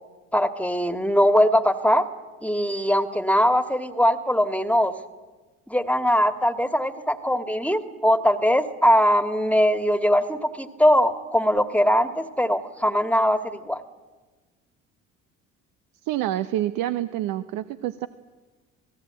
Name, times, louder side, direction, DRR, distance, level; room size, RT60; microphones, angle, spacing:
voice 1, 0.3-2.1 2.4-4.9 5.7-13.8, equal, 5° left, 11 dB, 1.9 m, -21 dB
voice 2, 16.0-18.1, right 13 dB, 65° right, 12 dB, 1.0 m, -27 dB
27.5 x 18.5 x 8.8 m, 1.3 s
hypercardioid pair, 60°, 36 cm